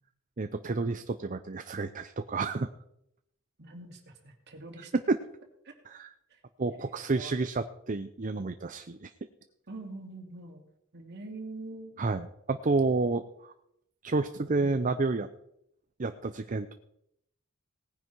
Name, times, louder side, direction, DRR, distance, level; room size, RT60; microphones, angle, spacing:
voice 1, 0.4-2.7 5.1-5.2 5.9-6.1 6.6-9.1 12.0-13.5 14.0-15.3 16.0-16.7, right 3 dB, 40° right, 9 dB, 0.6 m, -30 dB
voice 2, 3.6-4.9 5.6-5.7 6.3-6.4 6.7-7.3 9.7-12.1, right 2 dB, 55° right, 3 dB, 2.6 m, -45 dB
18.5 x 10.0 x 4.7 m, 0.78 s
head